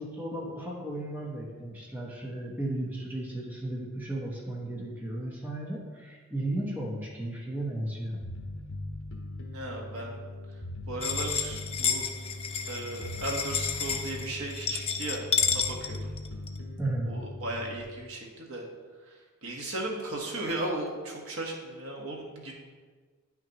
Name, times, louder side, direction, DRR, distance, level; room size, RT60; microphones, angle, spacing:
voice 1, 0.0-8.2 16.8-17.2, right 1 dB, 10° right, -3 dB, 1.0 m, -34 dB
Bass guitar, 8.2-17.8, left 1 dB, 60° left, 1.1 m, -40 dB
voice 2, 9.5-10.2 10.9-12.1 12.7-16.1 17.0-18.6 19.1-22.5, right 1 dB, 70° right, -1 dB, 1.3 m, -36 dB
sound 1, 11.0-16.6, left 7 dB, 25° left, 0.4 m, -30 dB
9.9 x 5.9 x 3.0 m, 1.4 s
head